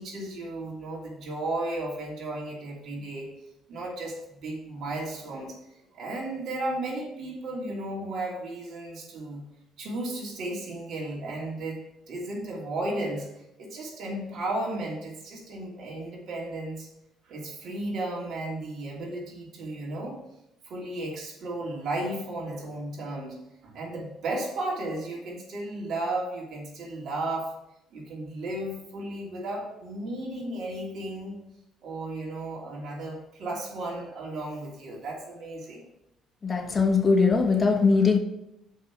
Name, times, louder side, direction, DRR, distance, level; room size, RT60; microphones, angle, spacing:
voice 1, 0.0-3.3 3.7-5.6 5.9-9.4 9.8-11.8 12.1-16.9 17.2-20.2 20.6-27.5 27.9-31.3 31.8-35.9, right 2 dB, 60° right, -2 dB, 2.9 m, -34 dB
voice 2, 36.4-38.2, left 4 dB, 30° left, 3 dB, 1.1 m, -21 dB
6.3 x 5.7 x 6.0 m, 0.84 s
cardioid pair, 105°, 0 cm